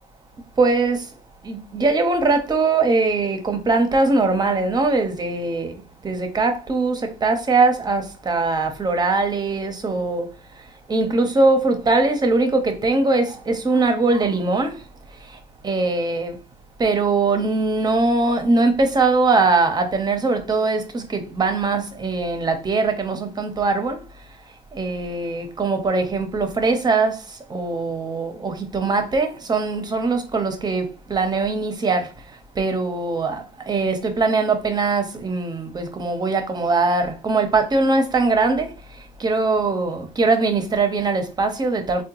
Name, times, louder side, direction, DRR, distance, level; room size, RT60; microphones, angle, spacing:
voice 1, 0.6-1.1 1.4-16.4 16.8-42.0, right 3 dB, 25° right, 0.7 m, -21 dB
3.5 x 2.2 x 2.9 m
cardioid pair, 110°, 17 cm